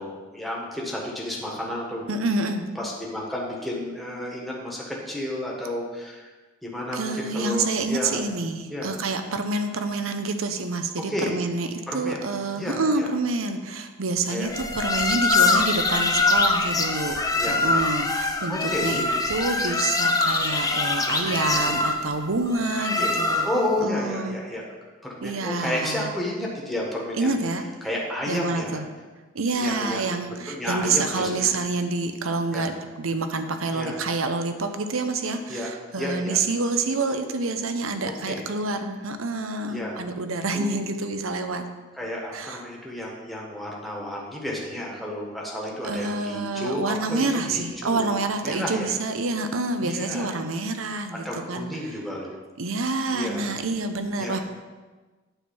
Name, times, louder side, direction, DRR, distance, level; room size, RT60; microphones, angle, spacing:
voice 1, 0.0-2.0 2.7-6.3 6.6-8.3 8.7-8.9 11.1-11.3 11.9-12.2 12.6-13.1 14.3-14.5 15.4-15.5 17.3-17.8 18.5-19.0 21.1-21.8 23.0-23.1 23.4-24.6 25.0-27.4 27.8-28.8 29.6-30.0 30.3-31.5 32.5-32.6 33.7-34.0 35.5-35.7 36.0-36.4 38.2-38.4 39.7-40.0 40.5-40.7 41.9-48.1 48.4-48.9 49.8-50.3 51.2-52.3 53.1-53.5 54.2-54.4, left 1 dB, ahead, -3 dB, 1.5 m, -31 dB
voice 2, 2.1-2.7 6.9-17.2 17.5-23.4 23.8-24.4 25.2-26.1 27.1-27.6 28.3-28.8 29.3-41.7 42.3-42.6 45.8-51.7 52.6-54.4, right 3 dB, 80° right, 8 dB, 0.8 m, -27 dB
sound 1, 14.5-23.7, left 3 dB, 20° left, 0.6 m, -24 dB
9.0 x 4.5 x 7.1 m, 1.3 s
head